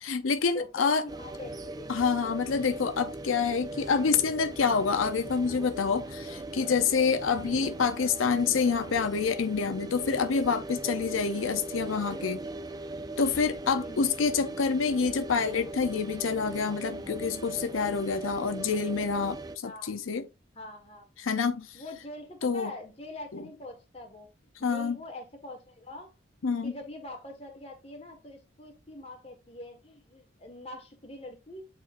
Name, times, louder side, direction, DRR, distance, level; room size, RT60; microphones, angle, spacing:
voice 1, 0.0-1.0 1.9-12.4 13.2-20.2 21.2-21.8 22.4-22.7 23.3-23.4 24.6-25.0 26.4-26.7, left 5 dB, 90° left, 0.6 m, -27 dB
voice 2, 0.5-1.9 7.5-7.9 13.8-14.1 19.6-20.0 20.5-21.1 21.7-24.3 24.7-26.1 26.6-31.7, left 2 dB, 30° left, 1.6 m, -44 dB
sound 1, 1.1-19.6, right 2 dB, 20° right, 0.4 m, -39 dB
8.7 x 4.4 x 2.5 m
head